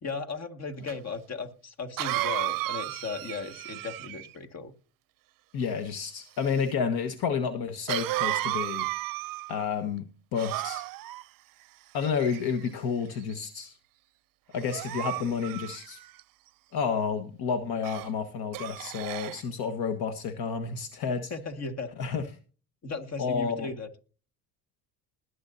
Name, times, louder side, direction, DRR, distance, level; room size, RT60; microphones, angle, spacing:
voice 1, 0.0-4.7 21.3-21.9 22.8-23.9, left 4 dB, 40° left, 8 dB, 2.0 m, -36 dB
Cough, 0.9-1.0 2.0-4.3 7.9-9.6 10.3-11.2 12.0-12.7 13.3-13.6 14.6-16.2 17.8-18.1 18.5-19.4, right 17 dB, 55° right, 0.6 m, -33 dB
voice 2, 5.5-8.9 9.5-10.8 11.9-13.7 14.5-16.0 16.7-21.3 22.0-22.2 23.2-23.7, left 6 dB, 65° left, 9 dB, 1.4 m, -30 dB
21.0 x 8.5 x 2.7 m, 0.37 s
supercardioid pair, 95°, 40 cm